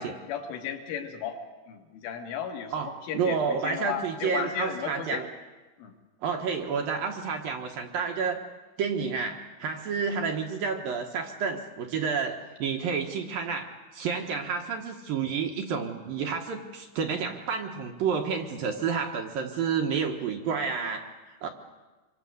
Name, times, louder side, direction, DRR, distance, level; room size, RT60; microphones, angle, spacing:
voice 1, 0.0-1.4 1.7-5.3 5.8-6.0, left 8 dB, 80° left, 3 dB, 4.8 m, -35 dB
voice 2, 2.7-5.3 6.2-8.4 8.8-21.5, right 6 dB, 60° right, 3 dB, 2.6 m, -30 dB
26.5 x 24.0 x 7.9 m, 1.2 s
omnidirectional pair, 5.5 m